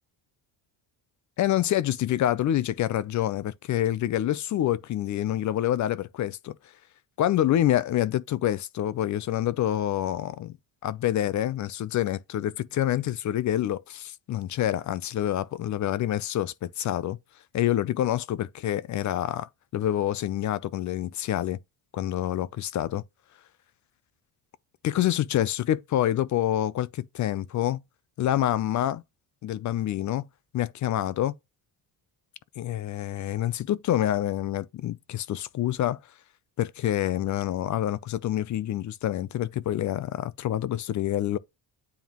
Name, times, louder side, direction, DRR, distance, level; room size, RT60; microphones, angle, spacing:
voice 1, 1.4-6.5 7.2-10.5 10.8-17.2 17.5-21.6 21.9-23.0 24.8-27.8 28.2-29.0 29.4-30.3 30.5-31.3 32.6-36.0 36.6-41.4, left 12 dB, 45° left, 0.4 m, -27 dB
9.3 x 3.6 x 2.9 m
cardioid pair, 125°, 43 cm